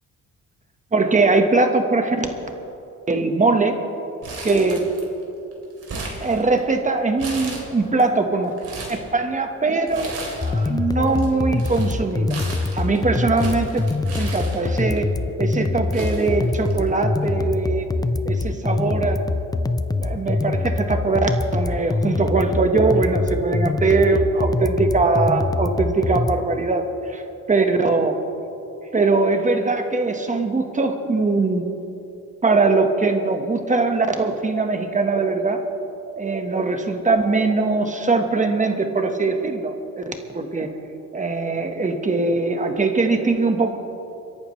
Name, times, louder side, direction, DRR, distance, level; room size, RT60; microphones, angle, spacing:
voice 1, 0.9-2.3 3.1-3.7 4.4-4.9 6.2-8.5 8.9-12.4 12.7-13.8 14.2-15.0 15.4-17.9 18.3-18.4 18.6-19.2 20.0-26.8 27.1-27.2 27.5-28.2 28.9-31.6 32.4-35.6 36.2-40.7 41.1-43.8, right 3 dB, 25° right, 5 dB, 1.4 m, -21 dB
Crumpling crinkling, 4.2-5.2 5.5-6.8 7.2-8.0 8.4-9.0 9.9-10.7 10.9-15.0 15.6-15.7 15.9-17.0 17.3-17.4 18.3-18.6, right 3 dB, 50° right, 3.5 m, -35 dB
sound 1, 10.4-26.4, left 3 dB, 15° left, 0.4 m, -24 dB
28.0 x 11.0 x 3.3 m, 2.8 s
cardioid pair, 90°, 30 cm